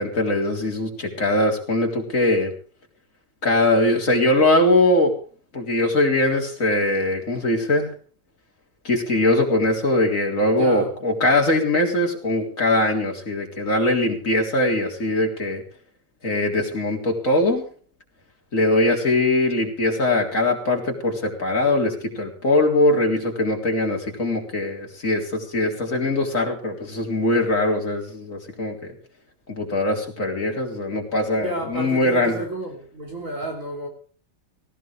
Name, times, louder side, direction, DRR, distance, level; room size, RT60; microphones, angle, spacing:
voice 1, 0.0-2.5 3.4-5.1 5.5-7.9 8.8-15.6 16.2-17.6 18.5-28.8 29.5-32.4, left 1 dB, 45° left, 4.1 m, -21 dB
voice 2, 10.5-10.9 31.4-33.9, right 1 dB, 45° right, 3.7 m, -31 dB
18.5 x 17.5 x 3.4 m
omnidirectional pair, 2.0 m